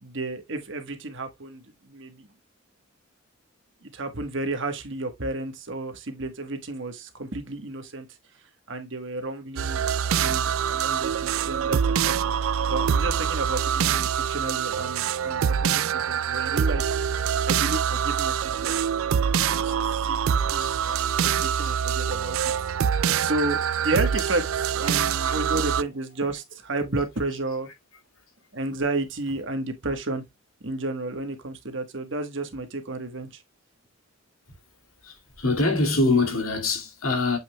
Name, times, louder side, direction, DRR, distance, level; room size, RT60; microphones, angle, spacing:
voice 1, 0.0-2.3 3.8-8.1 8.7-9.8 10.1-16.9 17.5-19.0 19.5-22.5 23.2-27.7 28.5-30.3 30.6-33.4, right 2 dB, 60° right, 1.3 m, -32 dB
sound 1, 9.6-25.8, right 8 dB, 75° right, 0.4 m, -25 dB
voice 2, 20.6-21.0 21.6-21.7 24.1-24.2 24.8-25.0 25.5-25.8 27.3-27.6 29.3-29.4 35.0-37.4, left 3 dB, 80° left, 2.5 m, -26 dB
7.7 x 6.2 x 2.3 m
head